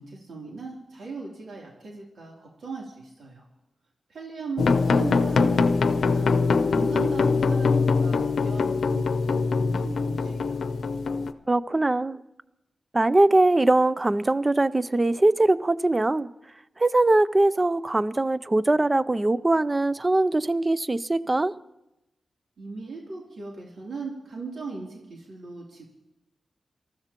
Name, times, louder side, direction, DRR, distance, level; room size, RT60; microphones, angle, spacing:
voice 1, 0.0-3.4 4.1-5.6 5.9-6.4 6.7-10.6 22.6-25.8, right 4 dB, 85° right, 3.0 m, -38 dB
sound 1, 4.6-11.3, left 4 dB, 75° left, 0.7 m, -23 dB
voice 2, 11.5-12.2 12.9-16.3 16.8-21.5, right 2 dB, 20° right, 0.4 m, -22 dB
26.0 x 14.0 x 2.9 m
wide cardioid pair, 140°, 0 cm